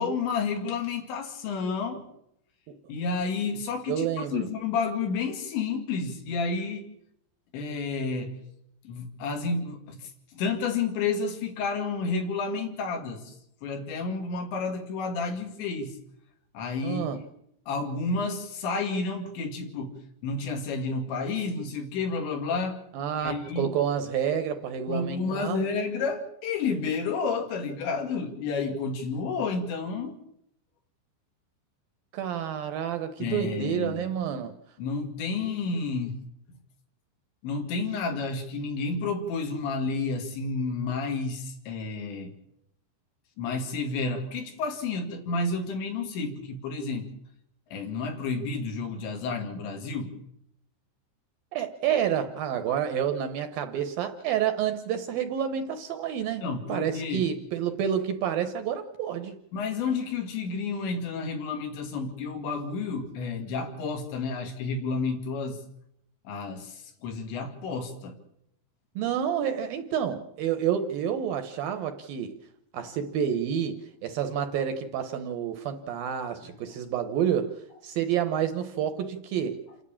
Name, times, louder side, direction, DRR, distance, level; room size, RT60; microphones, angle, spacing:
voice 1, 0.0-2.1 2.9-6.8 7.5-8.3 8.8-13.3 13.6-16.0 16.5-17.1 17.7-22.8 23.2-23.7 24.9-30.1 33.2-34.1 34.8-36.2 37.4-42.3 43.4-47.1 47.7-50.2 56.4-57.3 59.5-65.6 66.3-68.2, left 4 dB, 75° left, 4 dB, 4.6 m, -30 dB
voice 2, 3.9-4.5 16.8-17.2 22.9-25.6 32.1-34.6 51.5-59.4 69.0-72.4 72.7-79.6, right 9 dB, 70° right, 8 dB, 2.3 m, -29 dB
28.5 x 11.0 x 8.7 m, 0.77 s
omnidirectional pair, 5.3 m